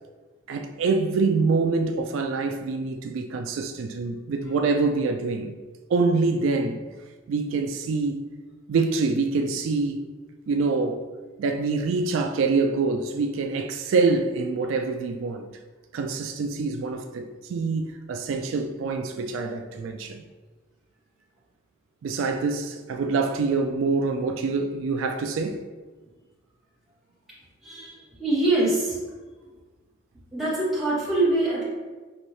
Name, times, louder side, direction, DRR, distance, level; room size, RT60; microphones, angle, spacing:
voice 1, 0.5-5.5 5.9-6.8 7.3-8.2 8.7-10.0 10.5-11.1 11.4-15.5 15.9-20.2 22.0-25.6, right 4 dB, 75° right, 0.3 m, -25 dB
voice 2, 27.6-29.0 30.3-31.6, right 2 dB, ahead, 1.3 m, -24 dB
5.4 x 2.7 x 3.1 m
head